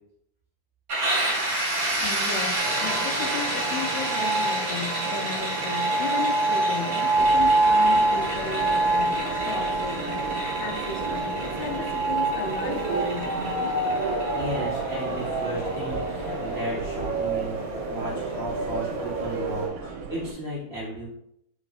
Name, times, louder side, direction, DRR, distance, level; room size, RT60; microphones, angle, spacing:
sound 1, 0.9-16.5, right 1 dB, 40° right, 1.6 m, -31 dB
voice 1, 2.0-10.3 10.6-13.6, left 5 dB, 80° left, 5 dB, 2.5 m, -35 dB
sound 2, 2.6-19.7, right 2 dB, 65° right, 2.0 m, -27 dB
Subway metro underground, 7.2-20.3, right 5 dB, 85° right, 2.5 m, -36 dB
voice 2, 14.3-21.1, equal, 50° left, -11 dB, 1.1 m, -35 dB
6.2 x 3.3 x 2.4 m, 0.76 s
omnidirectional pair, 4.5 m